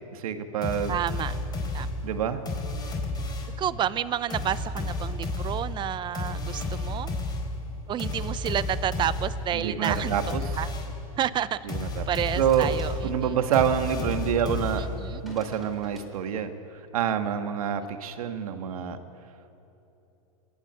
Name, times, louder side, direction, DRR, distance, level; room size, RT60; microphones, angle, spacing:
voice 1, 0.1-1.0 2.0-2.4 9.5-10.5 11.7-12.0 12.4-12.7 13.0-14.8 15.2-16.5 16.9-19.0, right 8 dB, 80° right, 7 dB, 1.7 m, -27 dB
sound 1, 0.6-3.7 4.3-11.0 11.7-15.2, left 2 dB, 20° left, 4.5 m, -32 dB
voice 2, 0.9-1.3 1.7-1.9 3.6-7.1 7.9-10.1 10.6-10.7 11.2-11.6 12.1-13.4 14.8-15.2 17.8-17.9, right 10 dB, 25° right, 15 dB, 0.7 m, -30 dB
sound 2, 12.4-13.5 15.3-16.3, equal, ahead, 4.9 m, -49 dB
26.5 x 11.5 x 8.9 m, 3.0 s
hypercardioid pair, 120°, 18 cm